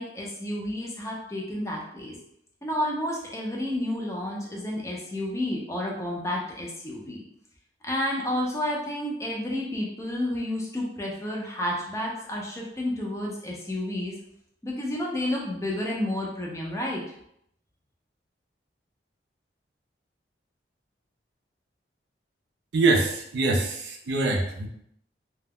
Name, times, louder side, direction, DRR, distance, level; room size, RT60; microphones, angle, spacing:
voice 1, 0.0-2.1 2.6-7.2 7.8-14.2 14.6-17.0, left 1 dB, 15° left, -2 dB, 0.5 m, -30 dB
voice 2, 22.7-24.7, right 3 dB, 65° right, 1 dB, 0.4 m, -24 dB
2.3 x 2.0 x 3.4 m, 0.74 s
head